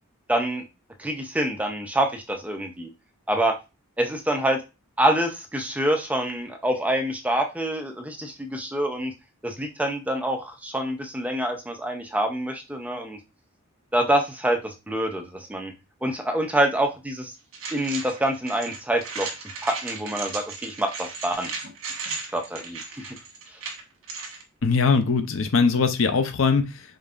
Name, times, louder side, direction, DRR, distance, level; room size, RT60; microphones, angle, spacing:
voice 1, 0.3-0.6 1.0-2.9 3.3-3.6 4.0-4.6 5.0-9.1 9.4-13.2 13.9-15.7 16.0-17.3 17.7-21.5 22.3-23.2, right 1 dB, 5° right, 4 dB, 0.5 m, -26 dB
sound 1, 17.5-24.4, right 4 dB, 70° right, 1.2 m, -36 dB
voice 2, 24.6-26.8, left 5 dB, 65° left, 9 dB, 0.6 m, -21 dB
5.1 x 3.2 x 2.5 m, 0.27 s
head